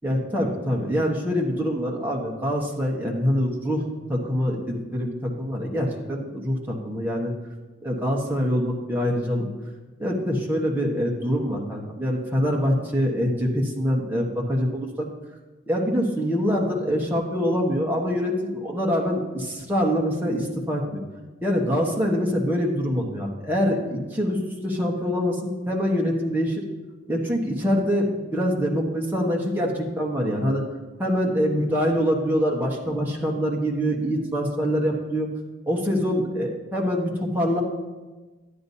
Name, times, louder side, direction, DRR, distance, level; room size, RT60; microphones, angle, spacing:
voice 1, 0.0-7.3 7.8-9.5 10.0-15.1 15.7-21.0 21.4-24.4 24.6-26.6 27.1-30.6 31.0-35.3 35.7-37.6, equal, 10° right, -2 dB, 1.1 m, -25 dB
12.5 x 9.5 x 2.7 m, 1.2 s
head